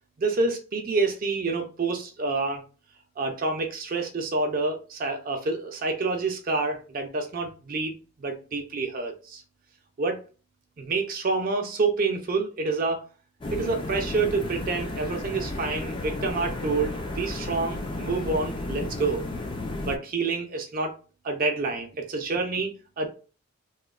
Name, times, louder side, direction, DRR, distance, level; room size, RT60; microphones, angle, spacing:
voice 1, 0.2-2.6 3.2-9.4 10.0-10.2 10.8-13.1 13.5-19.2 19.8-20.9 21.2-23.1, right 3 dB, 40° right, 0.4 m, -28 dB
sound 1, 13.4-20.0, left 2 dB, 25° left, 0.4 m, -33 dB
2.9 x 2.1 x 2.3 m
head